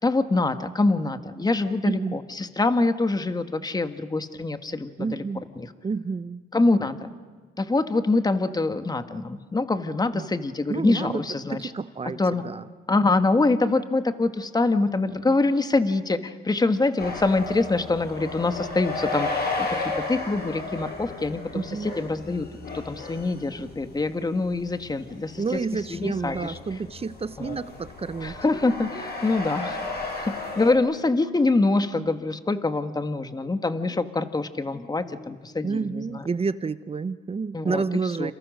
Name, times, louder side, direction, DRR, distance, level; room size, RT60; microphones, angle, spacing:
voice 1, 0.0-5.2 5.5-5.7 6.5-7.1 7.6-11.7 12.2-12.4 12.9-19.7 20.1-22.5 22.7-25.6 25.9-26.6 27.4-27.6 28.2-36.2 37.5-38.3, left 3 dB, 20° left, 9 dB, 1.7 m, -25 dB
voice 2, 1.8-2.2 5.0-5.4 5.8-6.4 10.1-10.2 10.7-11.2 11.5-12.6 21.5-21.9 25.3-28.4 35.6-38.3, right 4 dB, 30° right, 14 dB, 0.9 m, -29 dB
sound 1, 17.0-30.7, left 3 dB, 55° left, 7.0 m, -34 dB
29.5 x 28.0 x 6.6 m, 1.5 s
cardioid pair, 90°, 20 cm